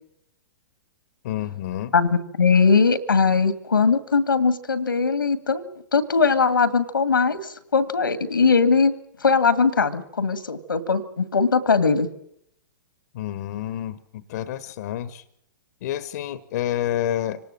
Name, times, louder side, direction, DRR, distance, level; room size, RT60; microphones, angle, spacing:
voice 1, 1.2-1.9 13.1-15.2 15.8-17.4, left 11 dB, 55° left, 15 dB, 1.3 m, -29 dB
voice 2, 1.9-5.6 5.9-9.0 9.2-12.1, left 5 dB, 85° left, 14 dB, 2.0 m, -20 dB
25.5 x 19.0 x 7.6 m, 0.73 s
figure-of-eight pair, 115°, 11 cm